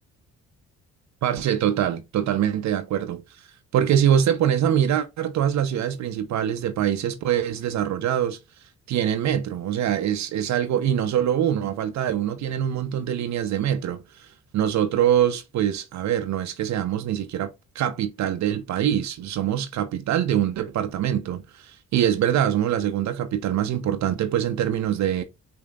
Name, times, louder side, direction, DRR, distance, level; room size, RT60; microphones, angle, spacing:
voice 1, 1.2-3.5 3.7-8.4 8.9-14.3 14.5-25.2, right 10 dB, 65° right, 0.6 m, -24 dB
5.2 x 2.8 x 2.3 m
cardioid pair, 90°, 30 cm